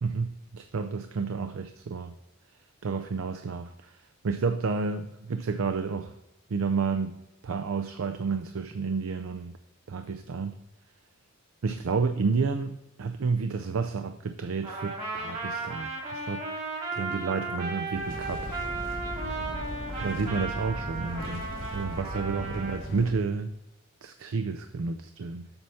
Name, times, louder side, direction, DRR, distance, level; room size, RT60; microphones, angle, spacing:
voice 1, 0.0-2.1 2.8-4.0 4.2-6.1 6.5-7.2 7.4-9.6 9.9-10.5 11.6-16.4 16.9-19.2 20.0-21.5 21.7-23.5 24.0-25.5, right 4 dB, 75° right, 7 dB, 0.5 m, -30 dB
Trumpet, 14.6-22.8, right 3 dB, 30° right, 1.7 m, -35 dB
sound 1, 17.9-23.1, equal, 75° left, 1.6 m, -38 dB
7.9 x 5.7 x 4.1 m, 0.92 s
head